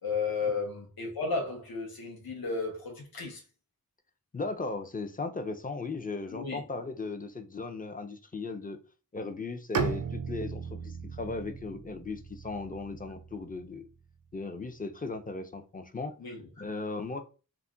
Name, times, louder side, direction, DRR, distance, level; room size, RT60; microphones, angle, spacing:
voice 1, 0.0-3.4 6.3-6.6 16.2-16.5, left 4 dB, 90° left, 0.8 m, -33 dB
voice 2, 4.3-8.8 9.1-13.9 14.3-16.1 16.6-17.2, left 3 dB, 25° left, 0.4 m, -37 dB
Bowed string instrument, 9.7-13.7, right 6 dB, 65° right, 0.5 m, -36 dB
2.3 x 2.1 x 3.6 m
wide cardioid pair, 65°, 35 cm